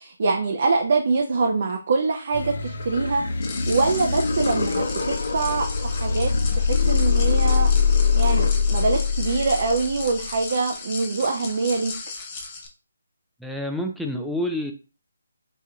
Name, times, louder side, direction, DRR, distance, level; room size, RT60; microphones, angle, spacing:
voice 1, 0.0-3.2 3.7-7.7 8.1-11.9, right 4 dB, 50° right, 2 dB, 0.6 m, -24 dB
sound 1, 2.3-10.3, left 5 dB, 60° left, 0.8 m, -23 dB
sound 2, 3.4-12.7, left 4 dB, 25° left, 0.8 m, -36 dB
voice 2, 13.4-14.7, left 1 dB, ahead, 2 dB, 0.5 m, -28 dB
4.2 x 3.6 x 2.3 m, 0.32 s
figure-of-eight pair, 150°, 0 cm